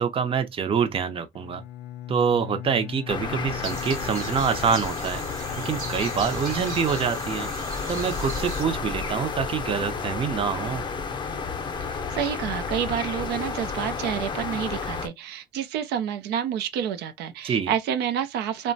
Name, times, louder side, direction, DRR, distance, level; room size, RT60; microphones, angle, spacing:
voice 1, 0.0-1.6 2.1-5.2 5.6-7.5 7.9-10.8 17.4-17.7, right 6 dB, 35° right, 0.6 m, -26 dB
Bowed string instrument, 1.3-8.0, left 12 dB, 80° left, 0.4 m, -40 dB
sound 1, 3.1-15.1, left 5 dB, 25° left, 0.6 m, -31 dB
sound 2, 3.6-8.6, right 6 dB, 55° right, 1.0 m, -39 dB
voice 2, 11.8-18.7, right 9 dB, 80° right, 0.5 m, -29 dB
2.9 x 2.2 x 2.6 m
cardioid pair, 110°, 17 cm